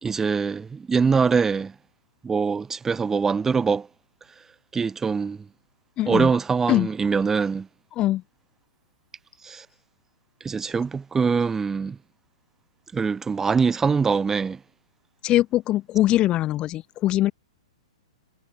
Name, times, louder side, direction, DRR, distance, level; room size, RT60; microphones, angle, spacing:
voice 1, 0.0-1.7 2.2-3.9 4.7-5.4 6.1-7.7 9.4-9.6 10.4-12.0 12.9-14.6, right 5 dB, 10° right, 1.1 m, -23 dB
voice 2, 6.0-6.3 6.7-6.9 8.0-8.2 15.2-17.3, left 14 dB, 30° left, 1.0 m, -22 dB
figure-of-eight pair, 115°, 3 cm